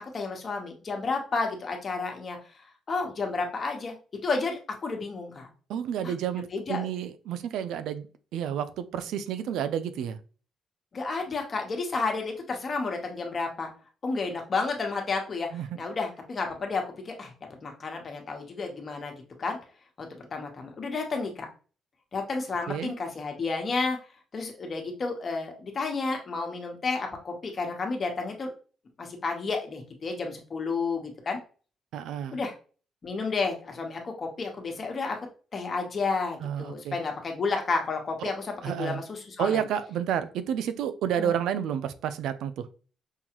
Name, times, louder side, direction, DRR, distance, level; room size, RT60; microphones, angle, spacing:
voice 1, 0.1-2.4 2.9-4.0 4.2-5.5 6.5-6.9 10.9-13.7 14.0-15.5 15.7-17.3 17.6-19.6 20.0-21.5 22.1-24.0 24.3-28.5 29.0-31.4 32.3-32.5 33.0-35.2 35.5-39.6 41.2-41.4, left 4 dB, 40° left, 1.2 m, -31 dB
voice 2, 5.7-8.1 8.3-10.2 15.5-15.7 22.7-22.9 31.9-32.4 36.4-37.0 38.6-39.0 39.4-42.7, right 9 dB, 85° right, 0.4 m, -30 dB
5.5 x 2.3 x 3.0 m
cardioid pair, 90°, 0 cm